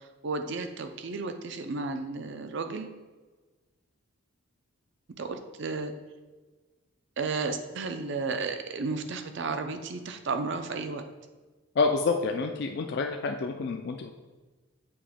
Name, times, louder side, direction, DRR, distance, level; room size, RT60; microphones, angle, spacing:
voice 1, 0.2-3.0 5.2-5.9 7.2-11.1, right 4 dB, 55° right, 7 dB, 0.5 m, -33 dB
voice 2, 11.8-14.1, left 4 dB, 50° left, 4 dB, 0.3 m, -28 dB
7.0 x 3.0 x 5.0 m, 1.3 s
head